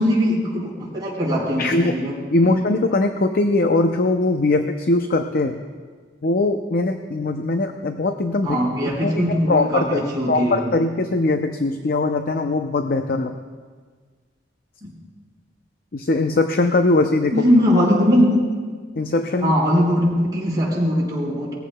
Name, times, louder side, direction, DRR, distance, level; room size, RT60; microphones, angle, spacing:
voice 1, 0.0-2.2 2.4-2.6 8.4-10.7 14.8-14.9 17.3-18.4 19.4-21.5, equal, 20° right, -7 dB, 4.4 m, -20 dB
voice 2, 1.6-2.0 2.3-5.6 6.2-10.0 10.3-13.3 15.9-17.5 19.0-19.5, left 2 dB, 50° left, 6 dB, 0.5 m, -21 dB
20.0 x 14.5 x 2.2 m, 1.5 s
head